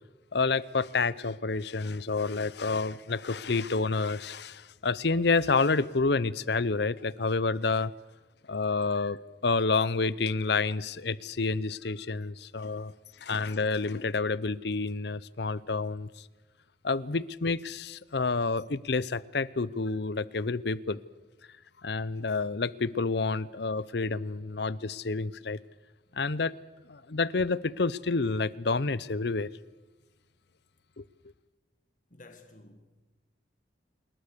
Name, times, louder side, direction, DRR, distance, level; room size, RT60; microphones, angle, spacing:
voice 1, 0.3-7.9 8.5-12.9 13.2-16.1 16.8-21.0 21.8-25.6 26.2-26.5 26.9-29.5 31.0-31.1, left 4 dB, 60° left, 0.7 m, -29 dB
voice 2, 32.1-33.0, left 2 dB, 40° left, 1.8 m, -53 dB
27.0 x 21.5 x 6.8 m
head